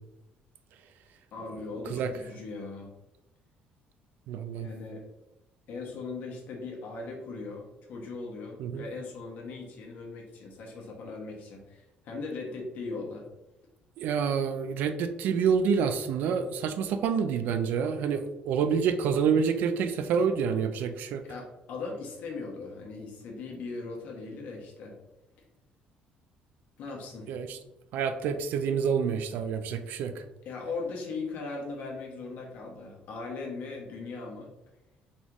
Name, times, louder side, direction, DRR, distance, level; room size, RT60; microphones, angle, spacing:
voice 1, 1.3-2.9 4.6-5.0 5.7-13.3 21.2-24.9 26.8-27.3 30.4-34.5, left 3 dB, 65° left, 0 dB, 1.2 m, -39 dB
voice 2, 4.3-4.7 8.6-8.8 14.0-21.2 27.3-27.6 27.9-30.2, right 6 dB, 70° right, 9 dB, 0.4 m, -27 dB
4.1 x 3.8 x 3.0 m, 0.96 s
cardioid pair, 140°, 3 cm